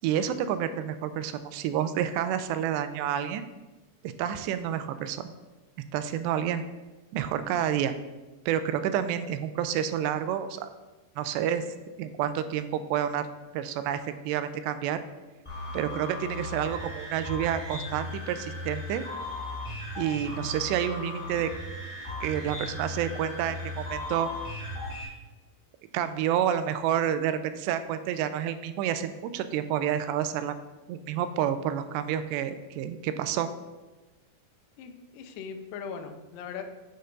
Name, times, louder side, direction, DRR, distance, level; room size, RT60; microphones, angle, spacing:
voice 1, 0.0-3.4 4.0-5.3 5.9-6.6 7.1-7.9 8.5-10.7 11.2-11.7 12.0-13.3 13.5-15.0 15.7-19.0 20.0-21.5 22.2-24.3 25.9-30.5 30.9-33.5, right 10 dB, 90° right, 11 dB, 2.7 m, -29 dB
sound 1, 15.4-25.0, left 1 dB, 15° left, 1.2 m, -37 dB
voice 2, 34.8-36.6, left 6 dB, 90° left, 6 dB, 1.9 m, -40 dB
8.5 x 6.6 x 3.9 m, 1.2 s
omnidirectional pair, 4.8 m